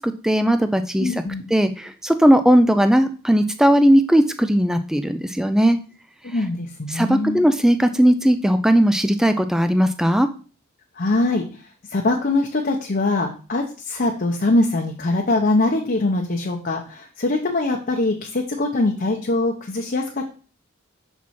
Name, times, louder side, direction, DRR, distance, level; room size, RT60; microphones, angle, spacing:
voice 1, 0.0-1.1 1.5-5.8 6.9-10.3, equal, 5° right, 9 dB, 0.4 m, -17 dB
voice 2, 1.0-1.4 6.2-7.4 11.0-11.5 11.9-20.2, left 2 dB, 45° left, 1 dB, 0.7 m, -22 dB
6.0 x 4.5 x 4.2 m, 0.37 s
head